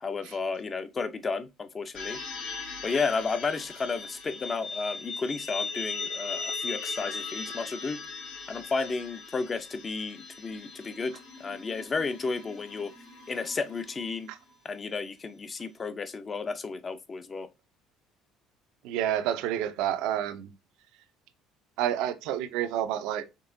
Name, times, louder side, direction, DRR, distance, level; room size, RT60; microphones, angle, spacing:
voice 1, 0.0-2.2 2.8-8.0 8.5-12.9 13.3-14.3 14.6-17.5, left 4 dB, 30° left, 0.6 m, -32 dB
sound 1, 1.9-14.5, left 4 dB, 70° left, 2.9 m, -39 dB
voice 2, 18.8-20.5 21.8-23.2, right 11 dB, 75° right, 0.6 m, -29 dB
5.3 x 3.4 x 2.6 m
supercardioid pair, 85°, 0 cm